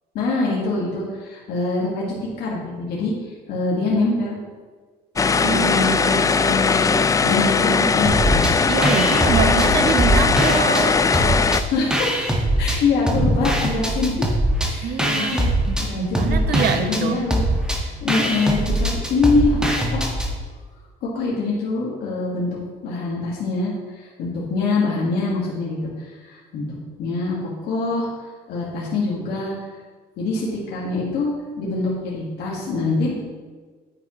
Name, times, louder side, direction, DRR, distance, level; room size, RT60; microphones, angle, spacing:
voice 1, 0.1-4.4 5.5-8.4 11.7-12.3 12.6-14.1 14.6-15.4 15.8-17.4 17.7-20.1 21.0-28.1 28.5-29.6 30.2-33.2, left 3 dB, 75° left, -5 dB, 1.8 m, -24 dB
sound 1, 5.2-11.6, left 5 dB, 20° left, 0.4 m, -19 dB
voice 2, 5.4-5.8 8.7-11.0 14.8-17.2, right 7 dB, 70° right, 8 dB, 0.9 m, -25 dB
sound 2, 8.1-8.5 8.8-10.9 11.1-12.8 13.1-20.3, right 1 dB, 5° right, 1.6 m, -22 dB
9.6 x 8.8 x 3.1 m, 1.4 s
cardioid pair, 110°, 17 cm